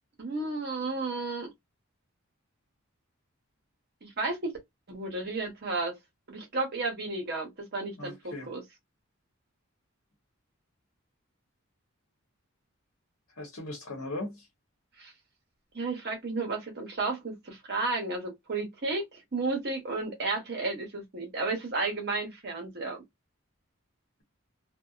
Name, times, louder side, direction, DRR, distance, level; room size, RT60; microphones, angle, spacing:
voice 1, 0.2-1.5 4.0-4.6 4.9-6.0 6.3-8.6 15.0-15.1 15.7-23.0, right 3 dB, 45° right, 0.8 m, -33 dB
voice 2, 8.0-8.5 13.4-14.5, left 2 dB, 80° left, 1.0 m, -38 dB
2.6 x 2.2 x 2.3 m
head